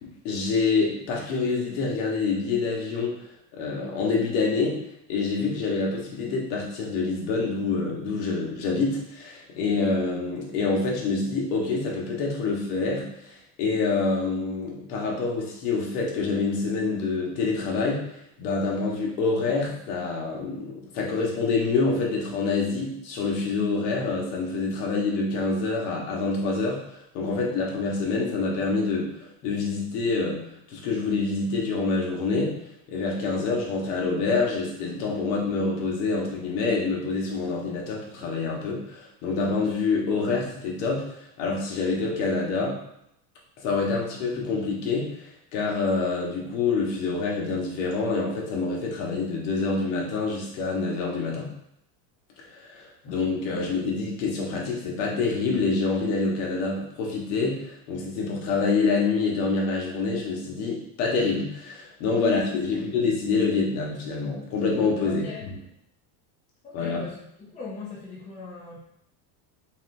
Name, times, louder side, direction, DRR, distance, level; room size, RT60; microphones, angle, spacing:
voice 1, 0.0-3.1 3.5-4.8 5.1-13.1 13.6-18.0 18.4-30.4 30.7-32.5 32.9-41.1 41.4-42.8 43.6-45.1 45.5-51.5 52.5-65.6 66.7-67.0, left 4 dB, 70° left, -2 dB, 1.4 m, -26 dB
voice 2, 62.1-62.8 65.0-65.4 66.6-68.8, left 4 dB, 15° left, -4 dB, 0.4 m, -39 dB
4.0 x 3.8 x 2.6 m, 0.76 s
cardioid pair, 150°, 49 cm